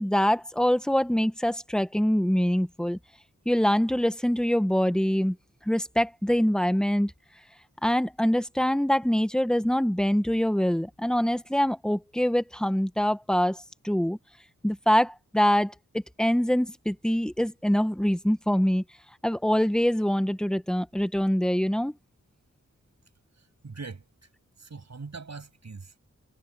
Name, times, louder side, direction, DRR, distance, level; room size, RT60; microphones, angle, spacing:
voice 1, 0.0-3.0 3.4-5.4 5.7-7.1 7.8-13.6 13.8-14.2 14.6-18.8 19.2-21.9, equal, ahead, 1.1 m, -24 dB
voice 2, 23.3-24.3 24.6-26.0, right 4 dB, 65° right, 6.6 m, -42 dB
wide cardioid pair, 95°, 30 cm